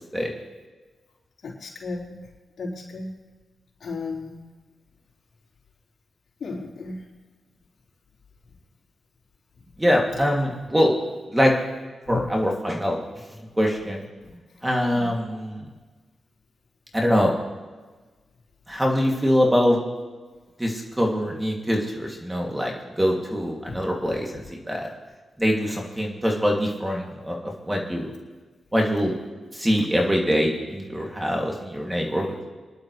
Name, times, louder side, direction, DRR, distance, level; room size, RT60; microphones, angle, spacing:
voice 1, 1.4-2.0 2.6-3.1 3.8-4.4 6.4-7.0 12.1-12.3 14.3-14.4 14.8-15.1 23.7-23.8, left 3 dB, 65° left, -4 dB, 4.3 m, -33 dB
voice 2, 9.8-10.9 11.3-11.6 12.1-13.0 13.6-14.0 14.6-15.7 16.9-17.4 18.7-19.8 20.6-24.9 25.4-27.4 27.6-28.1 28.7-29.2 29.5-32.5, equal, 10° right, 0 dB, 2.5 m, -23 dB
25.5 x 11.5 x 3.3 m, 1.3 s
cardioid pair, 75°, 0 cm